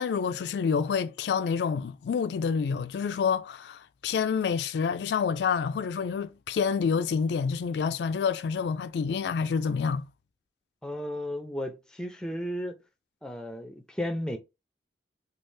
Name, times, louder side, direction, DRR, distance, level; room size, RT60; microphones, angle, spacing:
voice 1, 0.0-10.1, left 6 dB, 75° left, 0.3 m, -28 dB
voice 2, 10.8-12.8 13.2-14.4, left 1 dB, 5° left, 0.4 m, -34 dB
3.2 x 2.4 x 3.2 m
head